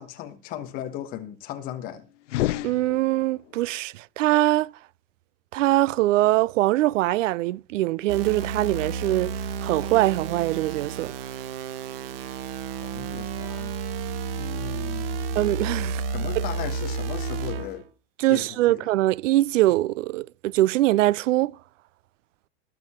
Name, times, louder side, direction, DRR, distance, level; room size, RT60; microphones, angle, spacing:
voice 1, 0.0-2.1 12.8-13.7 14.3-15.4 16.1-17.8 18.3-18.9, left 11 dB, 25° left, 1.3 m, -37 dB
sound 1, 2.2-3.5, left 16 dB, 80° left, 0.7 m, -29 dB
voice 2, 2.6-4.7 5.5-11.1 15.4-16.0 16.4-16.5 18.2-21.5, right 16 dB, 85° right, 0.6 m, -23 dB
sound 2, 8.1-17.8, right 5 dB, 50° right, 1.3 m, -31 dB
19.5 x 7.0 x 4.3 m
supercardioid pair, 180°, 36 cm